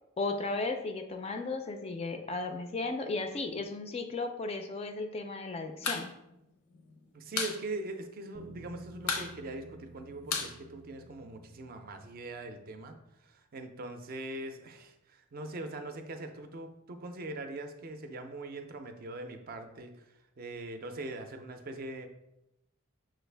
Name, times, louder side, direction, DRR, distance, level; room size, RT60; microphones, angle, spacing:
voice 1, 0.2-6.1, left 3 dB, 30° left, 6 dB, 0.3 m, -35 dB
sound 1, 5.7-6.1 6.3-6.4 6.7-7.6 7.9-8.0 8.3-8.7 9.0-11.4, left 5 dB, 85° left, 0.6 m, -34 dB
voice 2, 7.1-22.1, right 2 dB, 45° right, 6 dB, 0.4 m, -42 dB
sound 2, 8.3-12.7, right 1 dB, 90° right, 0.6 m, -52 dB
6.1 x 2.4 x 3.3 m, 0.88 s
head